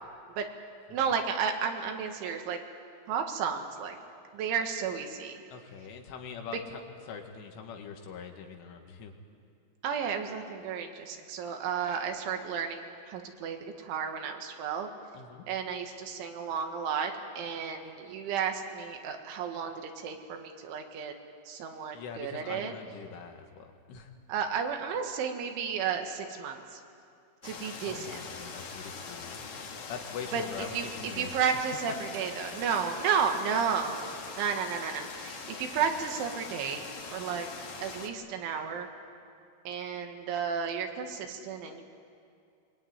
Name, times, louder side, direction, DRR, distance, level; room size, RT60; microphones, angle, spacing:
voice 1, 0.9-2.6 3.1-4.0 4.3-5.4 9.8-14.9 15.5-21.1 21.5-22.7 24.3-26.8 27.4-28.2 30.3-30.4 30.7-30.9 31.2-37.5 37.8-38.9 39.7-41.8, right 7 dB, 75° right, 4 dB, 4.1 m, -32 dB
voice 2, 5.5-6.8 7.1-9.1 15.1-15.5 21.9-24.1 27.9-31.4, left 6 dB, 85° left, 4 dB, 4.4 m, -43 dB
sound 1, 27.4-38.1, left 5 dB, 50° left, 2.5 m, -42 dB
23.5 x 23.5 x 9.6 m, 2.4 s
omnidirectional pair, 5.5 m